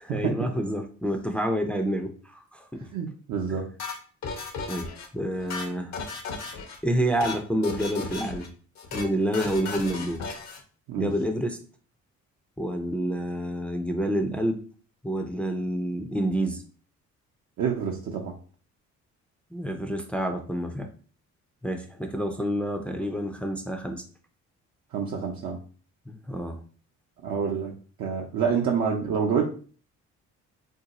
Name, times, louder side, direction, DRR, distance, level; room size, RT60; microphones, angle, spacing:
voice 1, 0.0-2.9 4.7-5.9 6.8-8.5 8.9-10.2 11.0-11.6 12.6-14.6 15.0-16.6 19.5-20.9 21.6-24.0 26.1-26.6, equal, 5° left, 4 dB, 0.4 m, -28 dB
voice 2, 2.9-3.7 10.9-11.1 17.6-18.3 24.9-25.6 27.2-27.7 28.0-29.5, right 6 dB, 65° right, -1 dB, 0.6 m, -27 dB
sound 1, 3.8-5.1 5.4-6.8 7.1-7.4 7.6-8.5 8.8-9.1 9.3-10.6, left 4 dB, 65° left, 0.8 m, -35 dB
2.7 x 2.2 x 3.9 m, 0.41 s
cardioid pair, 90°, 30 cm